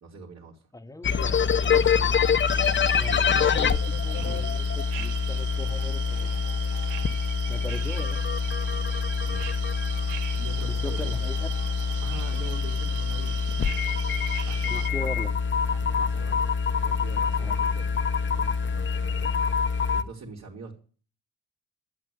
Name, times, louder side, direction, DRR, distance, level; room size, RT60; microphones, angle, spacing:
voice 1, 0.0-0.7 1.0-1.1 3.9-4.4 9.3-9.5 10.4-11.2 12.0-13.4 14.4-15.2 15.7-16.4 16.8-17.9 18.2-19.4 19.9-20.8, right 3 dB, 60° right, 3.2 m, -43 dB
voice 2, 0.7-2.2 2.6-6.3 7.5-8.2 10.6-11.5 14.7-15.3 17.4-17.6, left 2 dB, 10° left, 1.2 m, -39 dB
sound 1, 1.0-20.0, left 6 dB, 40° left, 0.9 m, -25 dB
sound 2, 2.5-14.9, right 11 dB, 85° right, 0.9 m, -39 dB
11.5 x 8.1 x 9.4 m
cardioid pair, 90°, 30 cm